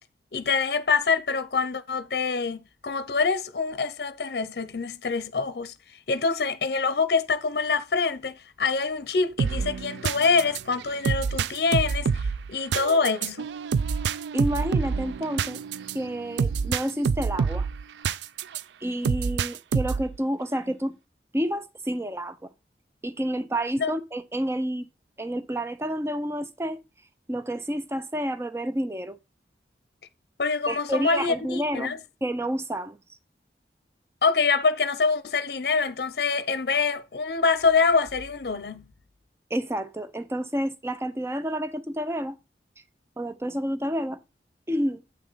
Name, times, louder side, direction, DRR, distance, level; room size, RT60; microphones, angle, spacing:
voice 1, 0.3-5.7 6.1-13.5 23.8-24.0 30.4-32.0 34.2-38.9, left 4 dB, 60° left, 0.6 m, -25 dB
sound 1, 9.4-18.6 19.0-20.2, right 6 dB, 80° right, 0.4 m, -27 dB
voice 2, 14.3-15.6 15.9-17.7 18.8-21.0 21.3-22.5 23.0-24.9 25.2-26.8 27.3-29.2 30.7-31.9 32.2-33.0 39.5-42.4 43.2-44.2 44.7-45.0, equal, 15° right, 0.5 m, -29 dB
8.0 x 6.3 x 3.9 m
head